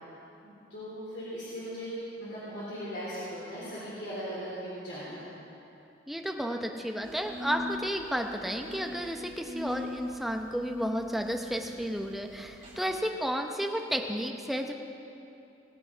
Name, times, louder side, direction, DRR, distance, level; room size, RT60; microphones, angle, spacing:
voice 1, 0.4-5.3 12.7-12.9, equal, 60° left, -9 dB, 3.5 m, -39 dB
voice 2, 6.1-14.7, equal, ahead, 3 dB, 0.7 m, -32 dB
sound 1, 7.0-12.8, left 2 dB, 40° right, 3.0 m, -42 dB
18.5 x 8.1 x 5.6 m, 2.8 s
head